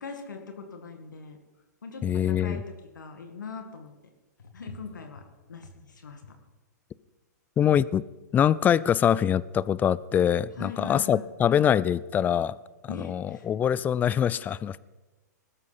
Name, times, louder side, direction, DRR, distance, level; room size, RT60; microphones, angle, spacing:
voice 1, 0.0-1.4 1.8-2.6 3.0-3.9 4.5-5.2 5.5-6.4 10.6-11.3 12.9-13.5, left 4 dB, 85° left, 4 dB, 2.0 m, -41 dB
voice 2, 2.0-2.6 7.6-8.0 8.3-12.6 12.8-14.8, left 9 dB, 20° left, 20 dB, 0.4 m, -24 dB
20.0 x 13.0 x 4.2 m, 1.2 s
hypercardioid pair, 125°, 10 cm